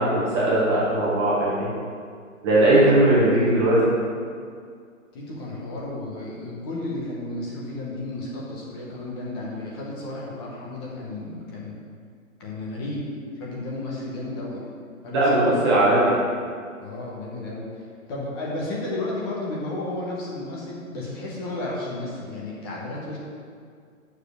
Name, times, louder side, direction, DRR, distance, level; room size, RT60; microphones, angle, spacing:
voice 1, 0.0-1.7 2.4-3.8 15.1-16.1, right 1 dB, 20° right, -8 dB, 1.3 m, -19 dB
voice 2, 2.5-3.8 5.1-11.8 12.4-13.1 13.3-14.6 15.0-15.6 15.8-15.9 16.8-17.7 18.1-23.2, left 2 dB, 15° left, -4 dB, 1.1 m, -33 dB
7.1 x 4.8 x 6.4 m, 2.1 s
hypercardioid pair, 160°, 42 cm